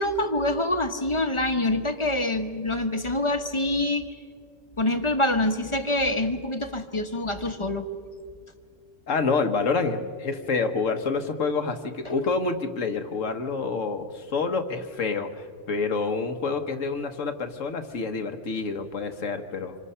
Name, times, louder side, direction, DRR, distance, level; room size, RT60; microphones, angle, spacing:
voice 1, 0.0-4.2 4.8-7.9 12.0-12.1, left 1 dB, 25° left, 7 dB, 1.0 m, -26 dB
voice 2, 9.1-19.8, left 4 dB, 85° left, 7 dB, 1.6 m, -28 dB
26.5 x 24.5 x 5.6 m, 2.1 s
omnidirectional pair, 1.3 m